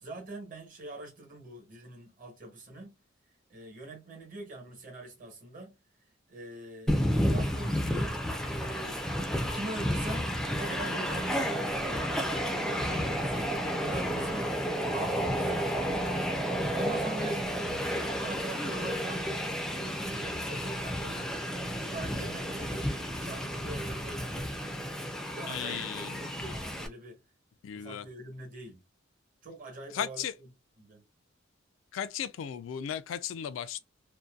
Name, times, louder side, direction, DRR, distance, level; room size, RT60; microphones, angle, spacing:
voice 1, 0.0-2.9 3.5-5.7 6.3-9.0 9.4-13.5 13.8-14.5 14.9-16.1 16.7-19.3 19.6-21.3 21.8-22.9 23.2-24.5 25.3-27.2 27.7-28.8 29.4-30.5 30.8-31.0, right 2 dB, 45° right, 1.1 m, -43 dB
Train, 6.9-26.9, equal, 5° left, 0.3 m, -31 dB
voice 2, 25.5-26.2 27.6-28.0 29.9-30.3 31.9-33.8, left 9 dB, 80° left, 0.3 m, -35 dB
2.6 x 2.1 x 2.3 m
head